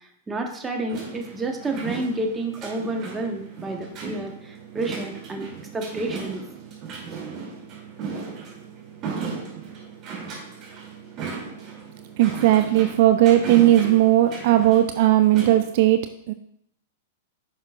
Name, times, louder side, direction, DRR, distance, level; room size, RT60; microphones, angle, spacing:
voice 1, 0.3-5.5 5.7-6.4, right 2 dB, 15° right, 2 dB, 1.2 m, -30 dB
sound 1, 0.9-15.6, right 5 dB, 35° right, 2.8 m, -36 dB
voice 2, 12.2-16.0 16.3-16.4, right 13 dB, 55° right, 9 dB, 0.4 m, -17 dB
10.0 x 5.7 x 2.5 m, 0.72 s
hypercardioid pair, 105°, 0 cm